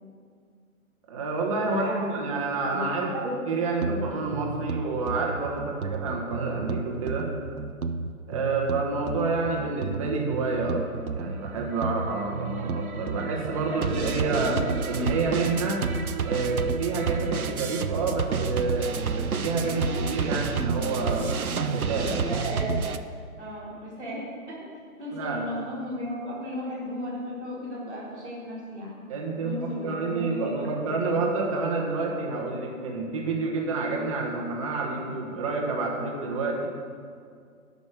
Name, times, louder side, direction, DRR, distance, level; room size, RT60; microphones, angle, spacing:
voice 1, 1.1-3.1 3.5-7.3 8.3-10.9 11.1-15.9 16.2-21.3 21.7-22.3 25.1-25.4 29.1-36.7, right 3 dB, 25° right, -1 dB, 1.2 m, -29 dB
voice 2, 1.7-2.0 2.7-2.8 3.1-3.3 3.8-4.0 13.6-14.7 22.3-22.7 23.4-24.2 24.5-24.6 25.0-28.9 29.4-31.2, equal, ahead, -17 dB, 0.6 m, -35 dB
sound 1, 3.8-23.0, right 5 dB, 75° right, 0.7 m, -30 dB
11.5 x 5.3 x 6.5 m, 2.2 s
figure-of-eight pair, 135°, 44 cm